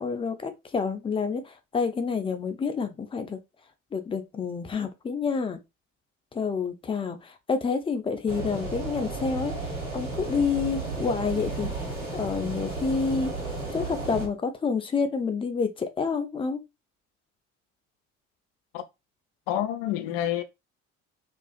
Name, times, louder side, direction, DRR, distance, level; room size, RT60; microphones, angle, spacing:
voice 1, 0.0-3.4 3.9-5.6 6.3-11.7 12.1-13.3 13.7-16.6, left 5 dB, 15° left, 0.4 m, -28 dB
sound 1, 8.3-14.3, right 2 dB, 85° right, 1.2 m, -33 dB
voice 2, 19.5-20.4, left 12 dB, 65° left, 0.5 m, -28 dB
2.4 x 2.4 x 2.3 m
figure-of-eight pair, 45°, 37 cm